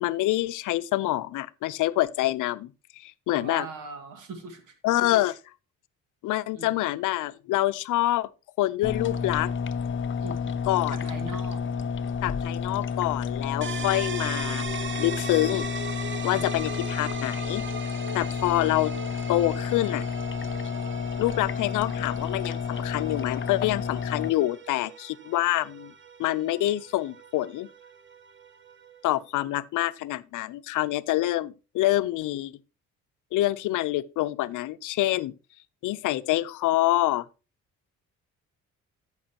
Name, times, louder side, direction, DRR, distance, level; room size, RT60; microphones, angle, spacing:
voice 1, 0.0-2.7 3.0-3.7 4.8-5.4 6.2-8.3 8.6-9.5 10.7-11.0 12.2-14.7 15.0-15.7 16.2-17.6 18.1-18.9 19.3-20.1 21.2-25.9 26.2-27.7 29.0-32.5 33.3-35.3 35.8-37.3, left 16 dB, 85° left, 0.6 m, -26 dB
voice 2, 3.3-4.7 6.6-6.7 10.2-11.6 16.3-16.4, right 4 dB, 90° right, 2.2 m, -40 dB
sound 1, 8.8-24.3, left 6 dB, 40° left, 0.7 m, -31 dB
sound 2, 13.6-29.2, right 5 dB, 40° right, 0.9 m, -40 dB
14.0 x 6.1 x 2.9 m
cardioid pair, 90°, 30 cm